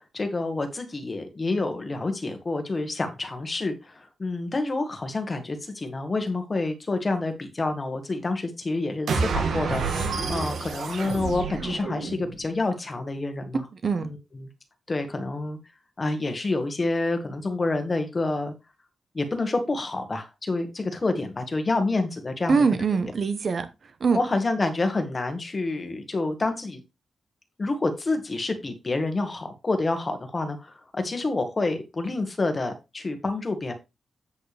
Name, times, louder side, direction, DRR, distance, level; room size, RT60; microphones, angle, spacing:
voice 1, 0.0-13.6 14.0-14.5 14.9-15.6 16.0-18.5 19.1-22.6 24.1-26.8 27.6-33.7, left 2 dB, 25° left, 1.8 m, -28 dB
sound 1, 9.1-12.4, right 4 dB, 85° right, 2.2 m, -28 dB
voice 2, 13.7-14.1 22.5-24.2, right 5 dB, 45° right, 1.1 m, -24 dB
8.5 x 7.8 x 3.4 m
wide cardioid pair, 140°, 0 cm